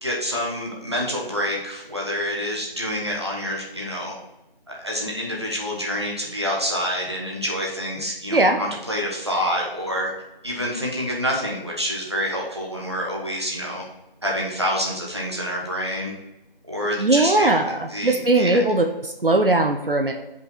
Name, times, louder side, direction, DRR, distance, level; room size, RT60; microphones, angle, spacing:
voice 1, 0.0-4.1 4.8-10.1 10.4-13.8 14.2-16.1 16.7-17.6 17.9-18.6, equal, 30° right, -3 dB, 1.2 m, -27 dB
voice 2, 17.0-17.7 18.0-20.1, right 2 dB, 70° right, 4 dB, 0.8 m, -19 dB
5.5 x 5.4 x 4.3 m, 0.94 s
figure-of-eight pair, 175°, 29 cm